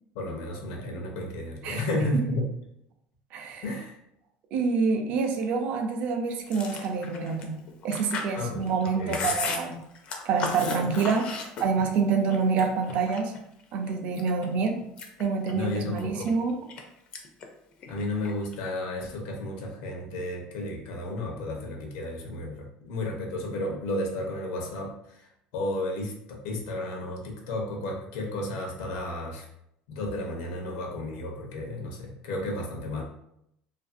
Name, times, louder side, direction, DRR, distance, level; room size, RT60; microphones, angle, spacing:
voice 1, 0.1-2.5 3.6-3.9 8.4-8.7 8.9-9.3 15.5-16.3 17.9-29.5 29.9-33.0, left 1 dB, 85° left, 0 dB, 0.7 m, -33 dB
voice 2, 3.3-3.6 4.5-7.6 7.8-9.8 10.2-13.3 13.7-14.8 15.2-16.6, right 5 dB, 50° right, 4 dB, 0.4 m, -27 dB
Chewing mastication, 6.5-12.0 12.3-13.4 13.9-14.5 14.8-16.8 17.1-17.5 17.7-18.6, left 4 dB, 40° left, 0.4 m, -35 dB
2.5 x 2.5 x 2.5 m, 0.77 s
cardioid pair, 165°, 3 cm